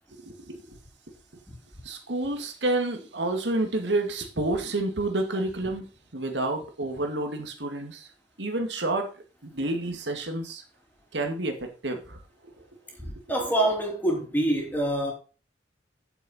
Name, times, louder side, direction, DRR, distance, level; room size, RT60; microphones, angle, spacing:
voice 1, 0.1-0.8 1.1-1.4 1.8-5.9 6.1-8.1 8.4-9.1 9.4-10.6 11.1-12.5 12.9-13.1 13.4-13.5, right 2 dB, 75° right, 2.1 m, -30 dB
voice 2, 13.3-15.1, right 1 dB, 10° left, 3.2 m, -25 dB
9.3 x 7.5 x 4.3 m
head